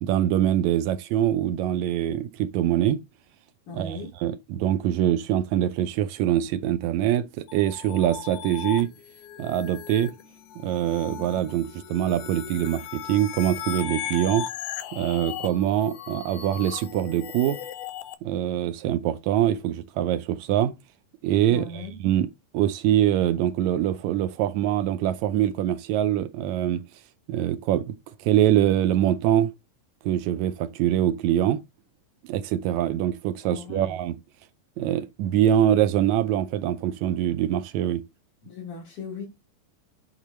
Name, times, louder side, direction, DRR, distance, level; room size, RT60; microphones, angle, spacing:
voice 1, 0.0-3.0 3.7-8.9 9.4-10.1 10.6-14.5 14.9-17.6 18.2-20.7 21.2-22.3 22.5-26.8 27.3-28.0 28.2-29.5 30.0-31.6 32.2-34.2 34.8-38.0, right 11 dB, 80° right, 1.8 m, -24 dB
voice 2, 3.7-4.1 21.5-21.9 33.4-34.0 38.4-39.2, left 4 dB, 75° left, 3.7 m, -37 dB
sound 1, 7.5-18.1, left 10 dB, 90° left, 2.2 m, -37 dB
8.4 x 3.8 x 3.1 m
omnidirectional pair, 3.6 m